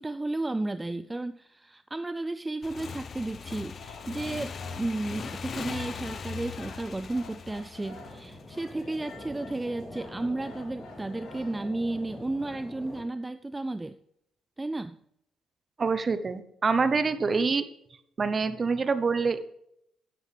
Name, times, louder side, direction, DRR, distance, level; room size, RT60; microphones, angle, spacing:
voice 1, 0.0-14.0 14.6-15.0, right 2 dB, 15° right, 12 dB, 0.4 m, -33 dB
Motorcycle / Engine, 2.6-9.0, left 6 dB, 50° left, 0.7 m, -40 dB
sound 1, 3.8-12.7, left 4 dB, 80° left, 2.1 m, -51 dB
sound 2, 7.8-13.0, left 1 dB, 15° left, 2.8 m, -45 dB
voice 2, 15.8-17.7 18.2-19.5, right 4 dB, 35° right, 12 dB, 0.9 m, -26 dB
12.0 x 9.1 x 3.4 m, 0.77 s
cardioid pair, 90°, 0 cm